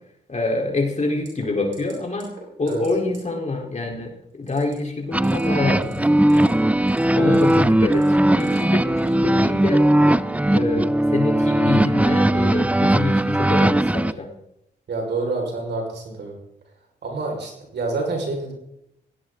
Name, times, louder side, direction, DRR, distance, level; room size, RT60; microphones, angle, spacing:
voice 1, 0.3-2.3 2.6-6.5 7.2-9.9 10.5-14.3, left 2 dB, 35° left, 1 dB, 4.2 m, -26 dB
sound 1, 1.2-1.5 1.7-1.9 2.2-2.4 2.7-2.9 3.1-3.2 4.4-4.7 5.1-5.4 5.8-6.5 6.8-7.5 7.9-8.6 9.0-9.1, right 6 dB, 80° right, 6.1 m, -47 dB
sound 2, 5.1-14.1, right 1 dB, 5° right, 0.7 m, -18 dB
voice 2, 14.9-16.4 17.0-18.5, right 3 dB, 65° right, 1 dB, 5.5 m, -27 dB
17.5 x 17.0 x 4.0 m, 0.81 s
supercardioid pair, 50°, 19 cm